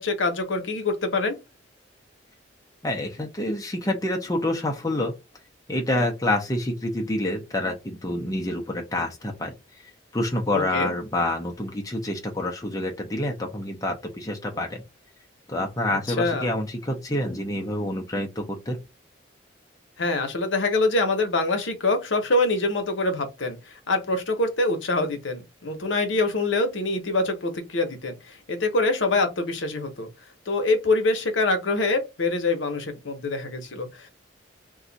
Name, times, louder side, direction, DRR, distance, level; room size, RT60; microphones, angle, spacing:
voice 1, 0.0-1.4 10.5-10.9 15.9-16.5 20.0-30.1 30.5-34.1, left 2 dB, 75° left, 0.8 m, -25 dB
voice 2, 2.8-5.1 5.7-9.5 10.1-14.8 15.5-18.8, left 1 dB, 20° left, 0.5 m, -27 dB
2.5 x 2.3 x 3.9 m
head